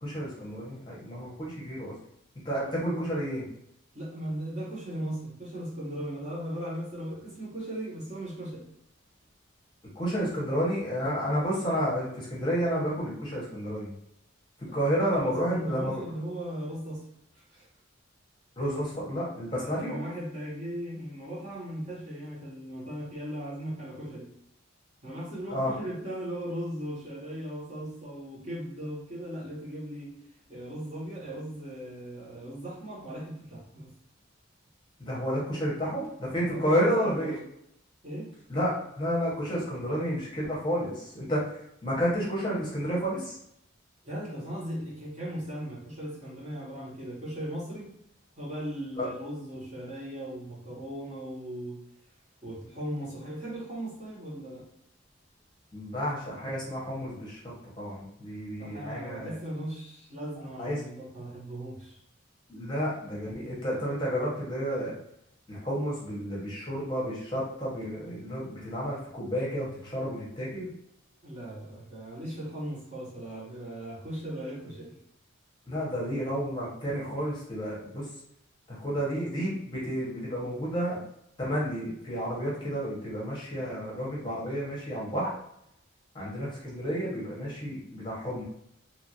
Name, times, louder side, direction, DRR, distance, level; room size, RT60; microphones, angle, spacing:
voice 1, 0.0-1.9 2.4-3.5 10.0-13.9 14.7-16.0 18.6-20.0 25.5-25.8 35.0-37.4 38.5-41.5 41.8-43.3 49.0-49.1 55.7-59.3 60.6-60.8 62.5-65.0 65.5-70.7 75.7-78.1 78.7-81.0 81.4-85.3 86.1-88.4, equal, 25° left, -5 dB, 0.8 m, -31 dB
voice 2, 3.9-8.6 14.7-17.0 17.3-17.7 19.5-24.3 25.0-30.1 30.5-33.9 36.3-37.4 38.0-38.3 44.0-47.9 48.4-51.8 52.4-54.6 58.6-62.0 71.2-74.9, right 1 dB, 35° right, -6 dB, 0.9 m, -38 dB
2.8 x 2.4 x 2.7 m, 0.76 s
head